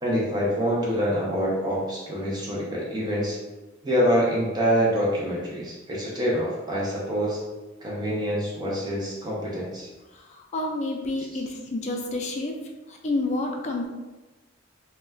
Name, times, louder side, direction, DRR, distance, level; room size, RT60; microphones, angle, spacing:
voice 1, 0.0-3.4 3.8-7.4 7.8-9.9 11.2-11.4, equal, 20° right, -5 dB, 0.5 m, -26 dB
voice 2, 10.5-12.6 13.0-13.9, left 2 dB, 35° left, 1 dB, 0.4 m, -28 dB
2.3 x 2.1 x 3.3 m, 1.2 s
head